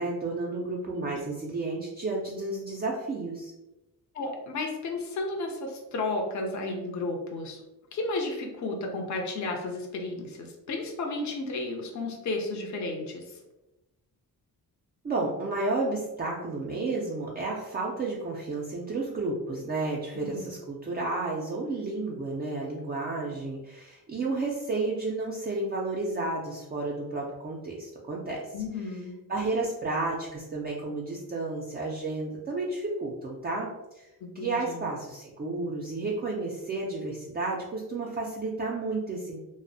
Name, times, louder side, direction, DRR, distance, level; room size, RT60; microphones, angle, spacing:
voice 1, 0.0-3.5 15.0-28.5 29.3-33.7 34.0-34.1 34.3-39.4, right 3 dB, 25° right, -3 dB, 0.3 m, -32 dB
voice 2, 4.1-7.6 7.9-13.2 20.1-20.5 28.5-29.2 34.2-34.9, left 2 dB, 45° left, 1 dB, 0.5 m, -33 dB
2.5 x 2.0 x 2.6 m, 1.0 s
cardioid pair, 90°, 39 cm